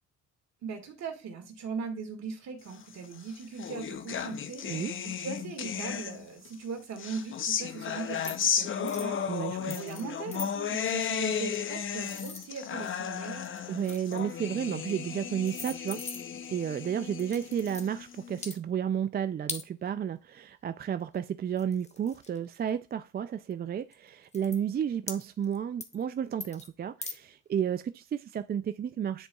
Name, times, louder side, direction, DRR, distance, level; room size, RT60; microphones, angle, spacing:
voice 1, 0.6-4.7 5.0-9.2 9.6-13.5, right 5 dB, 60° right, 1.9 m, -39 dB
sound 1, 3.0-6.5 7.0-18.4, left 8 dB, 40° left, 0.6 m, -34 dB
voice 2, 4.6-4.9 9.3-9.8 13.7-16.0 16.5-29.3, right 8 dB, 35° right, 0.4 m, -32 dB
sound 2, 8.2-8.5 8.8-9.1 9.7-10.0 10.3-10.5 11.5-13.0 13.4-14.3 15.0-15.1 15.4-16.5 17.2-17.9 18.3-18.6 19.5-19.7 21.1-21.2 21.6-22.7 23.4-23.5 23.9-24.0 24.3-24.6 25.1-25.6 25.8-26.0 26.4-26.7 27.0-27.2, left 4 dB, 20° left, 0.9 m, -41 dB
10.0 x 4.0 x 2.3 m
cardioid pair, 90°, 30 cm